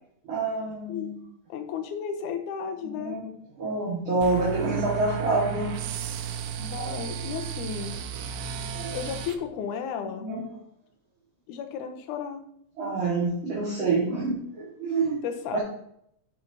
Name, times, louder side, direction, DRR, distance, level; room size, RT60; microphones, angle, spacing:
voice 1, 0.2-1.2 2.8-3.3 3.6-5.8 6.8-7.0 8.7-9.0 10.2-10.5 12.8-15.2 15.5-15.6, right 3 dB, 45° right, -6 dB, 2.4 m, -27 dB
voice 2, 1.5-3.2 6.6-8.0 8.9-10.3 11.5-12.4 15.2-15.6, left 7 dB, 85° left, 7 dB, 2.2 m, -33 dB
sound 1, 4.2-9.4, right 8 dB, 85° right, 2.0 m, -34 dB
8.9 x 7.1 x 2.8 m, 0.73 s
omnidirectional pair, 3.5 m